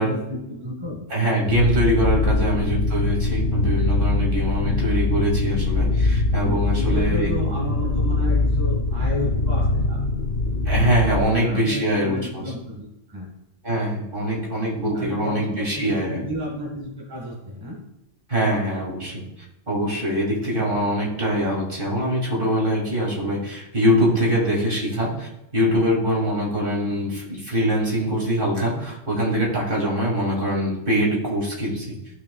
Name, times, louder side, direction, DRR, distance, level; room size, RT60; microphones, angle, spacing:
voice 1, 0.0-1.0 2.2-2.6 6.4-10.0 10.5-10.6 11.3-13.3 14.9-17.8 18.4-18.6 20.4-20.5, left 1 dB, 20° right, -2 dB, 1.8 m, -32 dB
voice 2, 1.1-7.5 10.6-12.5 13.6-16.2 18.3-19.3 19.7-32.0, equal, 45° right, -3 dB, 2.6 m, -23 dB
sound 1, 1.5-11.2, left 2 dB, 50° left, 1.5 m, -22 dB
14.5 x 5.9 x 2.3 m, 0.87 s
omnidirectional pair, 1.3 m